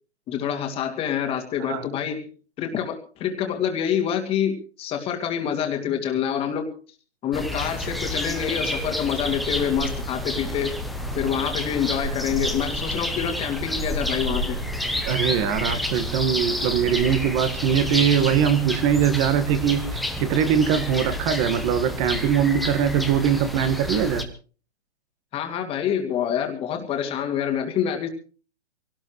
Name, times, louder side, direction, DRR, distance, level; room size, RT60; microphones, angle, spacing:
voice 1, 0.3-2.3 2.6-6.7 7.2-10.8 11.1-14.6 25.3-28.1, left 9 dB, 15° left, 4 dB, 2.4 m, -26 dB
sound 1, 7.3-24.2, left 1 dB, ahead, 0.9 m, -29 dB
voice 2, 15.1-24.3, right 8 dB, 20° right, 11 dB, 1.7 m, -22 dB
24.0 x 18.0 x 3.2 m, 0.39 s
hypercardioid pair, 150°, 33 cm